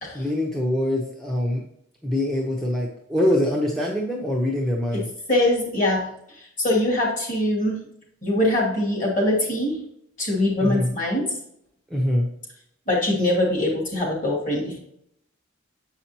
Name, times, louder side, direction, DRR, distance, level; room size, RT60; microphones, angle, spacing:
voice 1, 0.1-1.6 2.0-5.1 10.6-10.9 11.9-12.3, left 1 dB, ahead, -3 dB, 0.8 m, -24 dB
voice 2, 5.3-6.1 6.6-7.8 8.2-9.8 10.2-11.3 12.9-14.8, left 1 dB, 40° left, -2 dB, 2.5 m, -22 dB
7.4 x 5.7 x 2.9 m, 0.74 s
head